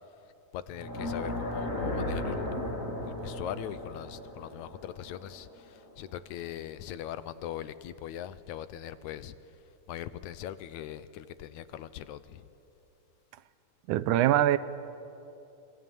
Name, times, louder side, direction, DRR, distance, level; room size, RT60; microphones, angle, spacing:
voice 1, 0.5-2.5 3.1-9.4 9.9-12.5, left 11 dB, 75° left, 2.0 m, -41 dB
sound 1, 0.7-5.8, left 1 dB, 25° left, 3.8 m, -35 dB
voice 2, 13.9-14.6, right 13 dB, 80° right, 2.2 m, -23 dB
26.5 x 22.0 x 9.2 m
omnidirectional pair, 3.5 m